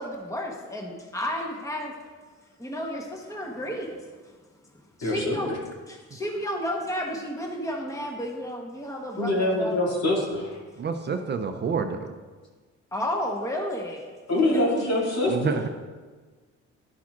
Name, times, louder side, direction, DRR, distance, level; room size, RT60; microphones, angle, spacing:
voice 1, 0.0-1.9 2.6-3.9 5.0-5.5 5.9-10.0 12.9-14.0 14.5-14.6, equal, 10° left, 0 dB, 1.1 m, -32 dB
voice 2, 5.0-5.6 9.2-10.6 14.3-15.5, left 2 dB, 55° left, -4 dB, 2.4 m, -25 dB
voice 3, 10.8-12.2 15.3-15.7, right 5 dB, 35° right, 7 dB, 0.5 m, -28 dB
11.5 x 5.8 x 2.5 m, 1.4 s
cardioid pair, 90°, 30 cm